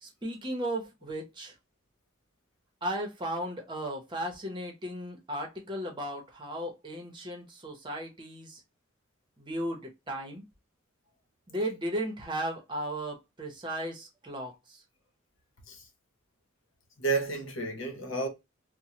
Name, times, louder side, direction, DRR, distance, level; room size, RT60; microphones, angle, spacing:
voice 1, 0.0-1.5 2.8-8.6 9.4-10.4 11.5-14.8, right 1 dB, 25° right, 0.8 m, -35 dB
voice 2, 17.0-18.3, right 3 dB, 75° left, 0.9 m, -31 dB
3.0 x 2.1 x 2.7 m
head